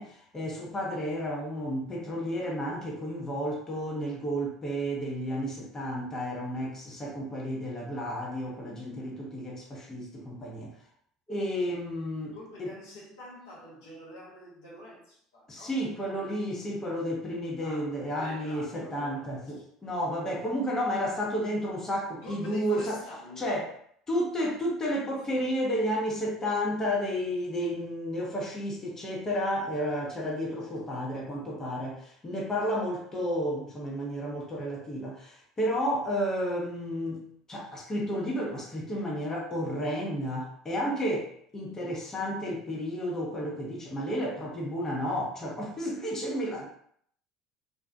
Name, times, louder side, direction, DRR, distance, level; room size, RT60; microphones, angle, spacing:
voice 1, 0.0-10.7 11.3-12.7 15.5-23.0 23.4-23.7 24.1-46.6, equal, 25° left, -3 dB, 0.8 m, -32 dB
voice 2, 12.2-15.7 16.0-16.4 17.6-19.7 22.1-23.5 25.1-25.4, left 1 dB, 75° left, -5 dB, 0.9 m, -47 dB
2.6 x 2.2 x 2.2 m, 0.65 s
hypercardioid pair, 65°, 2 cm